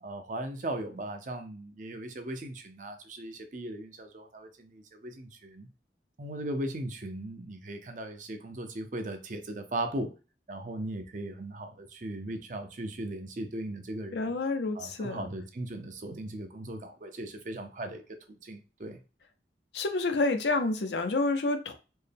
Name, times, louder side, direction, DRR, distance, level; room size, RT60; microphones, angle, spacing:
voice 1, 0.0-5.7 6.2-10.1 10.5-14.3 14.8-18.0 18.4-19.0, right 1 dB, 45° right, 0.6 m, -38 dB
voice 2, 14.1-15.3 19.7-21.7, left 3 dB, 80° left, 0.6 m, -29 dB
4.4 x 2.1 x 3.4 m
head